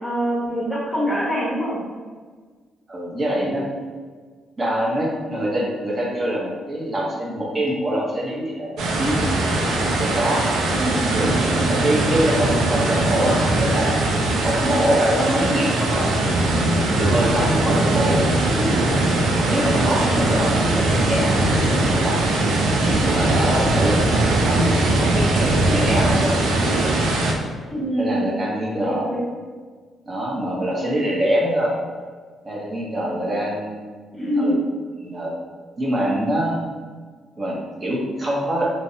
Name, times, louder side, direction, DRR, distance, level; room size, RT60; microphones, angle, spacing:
voice 1, 0.0-1.8 10.7-11.1 11.6-11.9 19.9-20.4 27.7-28.4 28.8-29.2 34.2-34.6, equal, 5° left, -5 dB, 0.9 m, -25 dB
voice 2, 2.9-3.6 4.6-9.2 9.9-10.5 11.1-13.9 14.4-16.2 16.6-18.8 19.4-22.2 22.9-26.8 28.0-29.1 30.0-31.7 32.4-33.9 34.4-34.6 35.0-35.3 35.8-36.7 37.4-38.7, equal, 35° right, -3 dB, 0.8 m, -24 dB
sound 1, 8.8-27.3, right 2 dB, 70° right, 0.4 m, -20 dB
2.6 x 2.0 x 2.5 m, 1.5 s
hypercardioid pair, 50°, 0 cm